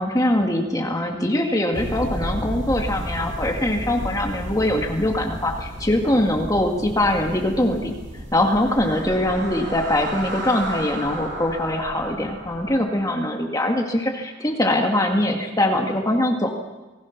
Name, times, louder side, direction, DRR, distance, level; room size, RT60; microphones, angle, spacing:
voice 1, 0.0-8.0 8.3-16.6, left 1 dB, 15° left, 2 dB, 1.9 m, -22 dB
sound 1, 1.7-12.7, equal, 65° right, 7.6 m, -34 dB
sound 2, 8.4-14.5, right 1 dB, 50° right, 5.3 m, -35 dB
28.0 x 19.5 x 5.9 m, 1.2 s
head